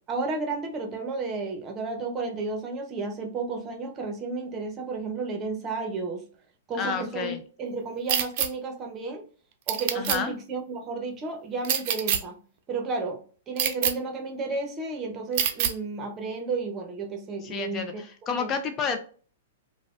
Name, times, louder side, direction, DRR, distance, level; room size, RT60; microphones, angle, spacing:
voice 1, 0.1-6.2 6.7-7.3 7.6-9.2 9.7-12.4 12.7-18.0 18.3-18.5, right 3 dB, 25° right, 4 dB, 0.8 m, -32 dB
voice 2, 6.8-7.4 9.9-10.3 17.4-19.0, left 6 dB, 30° left, 7 dB, 0.4 m, -30 dB
sound 1, 8.1-8.5 9.7-10.2 11.6-12.2 13.6-13.9 15.4-15.7, right 9 dB, 50° right, 0.5 m, -25 dB
3.2 x 2.1 x 2.4 m, 0.42 s
hypercardioid pair, 120°, 0 cm